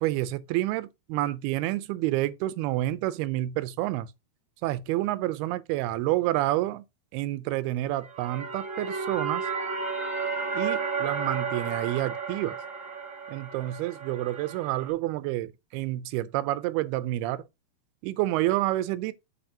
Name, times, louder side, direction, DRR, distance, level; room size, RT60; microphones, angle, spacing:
voice 1, 0.0-4.1 4.6-6.8 7.1-9.5 10.5-12.6 13.3-17.4 18.0-19.1, right 16 dB, 90° right, 2.6 m, -29 dB
sound 1, 8.0-14.9, right 5 dB, 45° right, 0.9 m, -33 dB
8.0 x 7.9 x 2.9 m
omnidirectional pair, 4.5 m